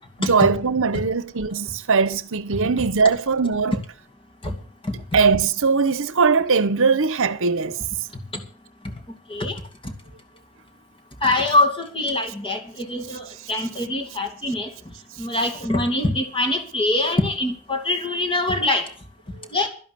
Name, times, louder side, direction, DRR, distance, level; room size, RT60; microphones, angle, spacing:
voice 1, 0.2-3.8 5.1-7.8 19.4-19.5, right 5 dB, 65° right, 1.0 m, -20 dB
voice 2, 11.2-14.7 15.2-18.9 19.5-19.7, left 2 dB, 25° left, 2.5 m, -23 dB
12.0 x 11.0 x 6.8 m
head